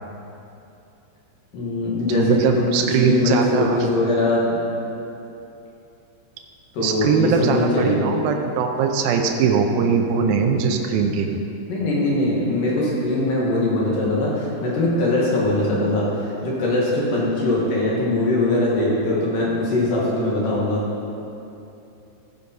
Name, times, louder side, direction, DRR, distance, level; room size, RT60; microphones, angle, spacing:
voice 1, 1.5-2.7 3.0-4.6 6.7-8.0 11.7-20.8, left 2 dB, 60° left, -5 dB, 2.9 m, -21 dB
voice 2, 2.1-3.8 6.8-11.3, right 6 dB, 85° right, 3 dB, 2.1 m, -21 dB
15.0 x 5.4 x 5.2 m, 2.8 s
omnidirectional pair, 5.0 m